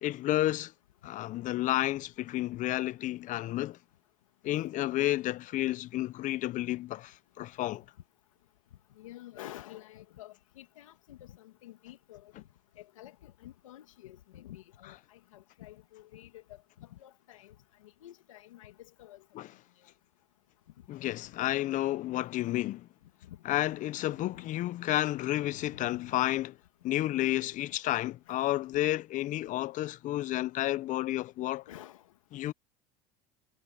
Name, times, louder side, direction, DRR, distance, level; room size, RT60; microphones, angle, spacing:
voice 1, 0.0-0.7 1.0-3.8 4.4-7.8 19.3-19.5 20.9-22.9 23.4-26.6 26.8-31.7 32.3-32.5, left 15 dB, 50° left, 0.8 m, -31 dB
voice 2, 9.0-12.3 12.8-17.5 17.8-19.2 19.8-19.9 23.2-24.5 25.1-26.0 28.3-28.4 31.7-32.1, left 14 dB, 90° left, 2.5 m, -50 dB
hypercardioid pair, 85°, 16 cm